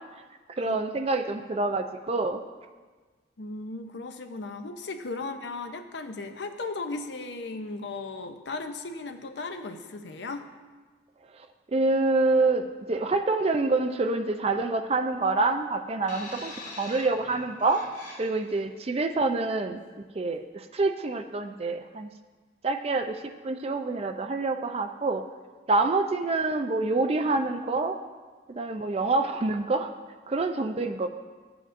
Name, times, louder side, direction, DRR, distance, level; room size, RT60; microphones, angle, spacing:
voice 1, 0.6-2.4 11.3-17.8 18.2-19.8 20.1-22.1 22.6-23.2 23.4-25.2 25.7-28.0 28.5-29.9 30.3-31.1, right 3 dB, 30° right, 7 dB, 0.4 m, -27 dB
voice 2, 3.4-10.5, left 3 dB, 65° left, 7 dB, 0.6 m, -36 dB
sound 1, 16.1-18.6 19.5-19.7, left 2 dB, 45° left, 1.3 m, -43 dB
13.5 x 7.8 x 2.5 m, 1.4 s
head